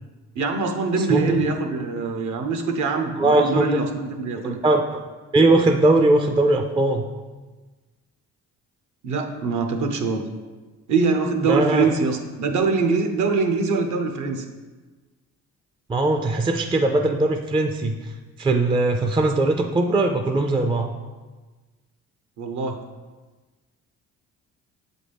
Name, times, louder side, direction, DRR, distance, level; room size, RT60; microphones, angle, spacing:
voice 1, 0.3-4.6 9.0-10.2 10.9-14.4 22.4-22.8, right 4 dB, 70° right, 4 dB, 0.8 m, -23 dB
voice 2, 0.9-1.4 3.2-3.7 4.4-5.0 5.3-7.0 11.5-11.9 15.9-18.1 18.4-20.9, right 2 dB, 15° right, 5 dB, 0.3 m, -20 dB
7.5 x 4.1 x 3.4 m, 1.3 s
cardioid pair, 90°, 30 cm